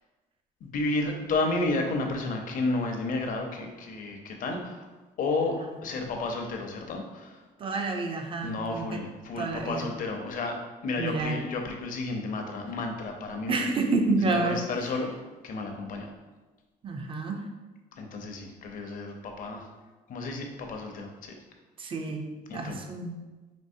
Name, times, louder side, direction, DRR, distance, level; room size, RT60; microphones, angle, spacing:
voice 1, 0.6-4.9 5.2-7.4 8.4-10.6 10.8-13.7 14.3-15.1 15.4-16.1 18.0-19.7 20.1-21.3 22.5-22.8, left 3 dB, 55° left, 3 dB, 0.7 m, -32 dB
voice 2, 7.6-9.0 9.4-9.9 11.0-11.4 13.5-14.6 16.8-17.5 21.8-22.2 22.5-23.2, right 3 dB, 30° right, 4 dB, 0.5 m, -29 dB
5.3 x 2.9 x 2.7 m, 1.2 s
cardioid pair, 110°, 17 cm